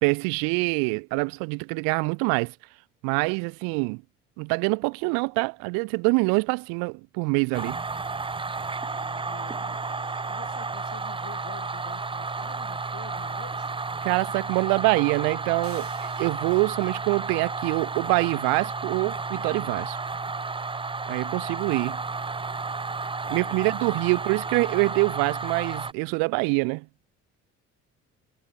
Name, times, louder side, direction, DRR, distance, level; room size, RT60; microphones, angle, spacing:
voice 1, 0.0-2.5 3.0-4.0 4.4-7.8 14.0-20.0 21.1-22.0 23.3-26.9, right 32 dB, 75° right, 0.6 m, -25 dB
sound 1, 7.5-25.9, right 4 dB, 15° right, 0.7 m, -32 dB
voice 2, 8.8-13.7 23.4-23.8, left 10 dB, 55° left, 5.7 m, -48 dB
sound 2, 15.6-16.9, right 6 dB, 40° right, 6.6 m, -50 dB
hypercardioid pair, 55°, 35 cm